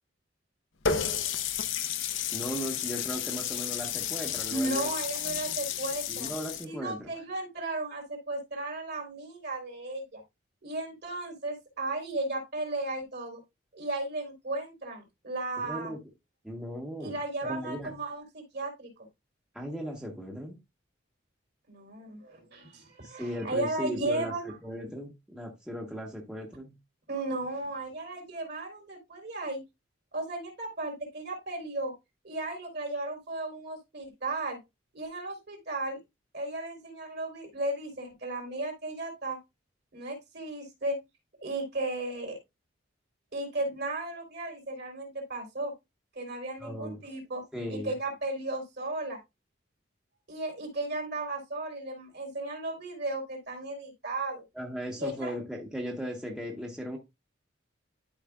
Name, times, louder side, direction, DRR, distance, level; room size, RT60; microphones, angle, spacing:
Water tap faucet, 0.9-6.6, left 8 dB, 75° left, 0.8 m, -32 dB
voice 1, 2.3-4.9 6.1-7.1 15.6-16.0 16.4-17.9 19.5-20.6 23.0-26.7 46.6-47.0 47.5-47.9 54.5-57.0, equal, 5° right, -1 dB, 1.1 m, -37 dB
voice 2, 4.5-6.3 6.7-10.2 10.6-13.4 13.7-15.9 17.0-18.9 21.7-24.5 27.1-29.6 30.1-31.9 32.2-34.6 34.9-36.0 36.3-39.4 39.9-41.0 41.4-42.4 43.3-45.7 46.1-49.2 50.3-54.4 54.9-55.3, right 2 dB, 55° right, 2 dB, 3.4 m, -35 dB
12.0 x 4.9 x 2.3 m, 0.22 s
head